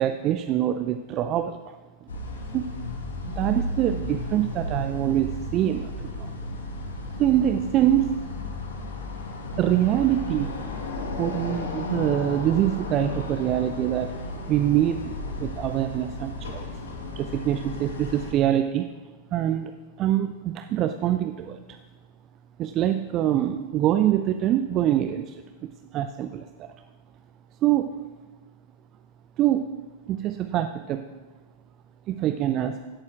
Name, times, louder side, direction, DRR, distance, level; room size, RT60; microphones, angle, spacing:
voice 1, 0.0-1.7 2.0-2.1 2.5-2.6 3.4-6.3 7.2-8.1 9.6-10.5 11.2-14.1 14.5-15.1 15.4-16.8 17.1-18.9 19.3-19.7 20.0-21.8 22.6-26.7 27.6-27.9 29.4-29.6 30.1-31.0 32.1-32.8, right 12 dB, 35° right, 9 dB, 0.4 m, -24 dB
sound 1, 2.1-18.3, left 1 dB, 70° left, 1.5 m, -34 dB
16.5 x 11.5 x 2.5 m, 1.3 s
figure-of-eight pair, 90°, 0 cm